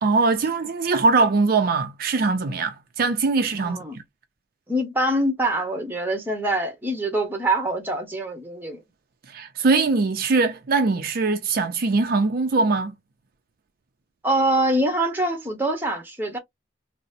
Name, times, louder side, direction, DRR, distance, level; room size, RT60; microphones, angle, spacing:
voice 1, 0.0-4.0 9.3-12.9, right 3 dB, 55° right, 0.5 m, -22 dB
voice 2, 3.5-4.0 4.7-8.8 14.2-16.4, right 1 dB, 10° right, 1.0 m, -24 dB
3.9 x 2.0 x 2.5 m
head